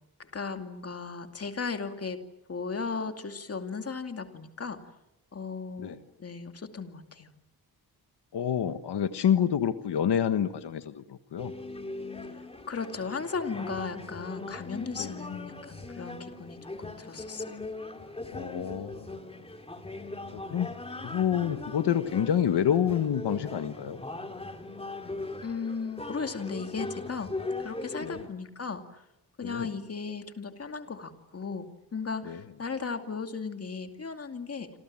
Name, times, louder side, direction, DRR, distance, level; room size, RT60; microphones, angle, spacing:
voice 1, 0.2-2.2 2.5-4.8 5.3-7.3 12.7-17.6 25.4-27.3 27.6-29.0 29.4-34.7, left 5 dB, 35° left, 6 dB, 2.5 m, -36 dB
voice 2, 8.3-11.5 15.0-15.2 18.3-19.2 20.3-20.7 21.0-24.0 28.0-28.3 29.4-29.7 32.2-32.4, left 9 dB, 90° left, 10 dB, 1.5 m, -28 dB
sound 1, 11.4-28.3, left 2 dB, 15° left, 2.5 m, -40 dB
27.5 x 27.5 x 7.5 m, 0.92 s
wide cardioid pair, 155°, 40 cm